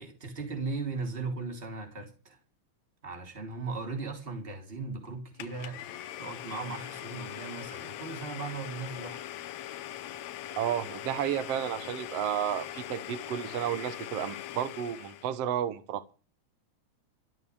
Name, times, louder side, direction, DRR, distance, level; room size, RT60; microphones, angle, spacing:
voice 1, 0.0-2.4 3.0-5.8 6.2-9.2, right 4 dB, 20° right, 3.4 m, -37 dB
Domestic sounds home sounds, 5.4-15.4, left 12 dB, 75° left, 2.0 m, -41 dB
voice 2, 10.6-16.1, right 10 dB, 65° right, 2.0 m, -32 dB
14.0 x 7.8 x 8.7 m
omnidirectional pair, 3.3 m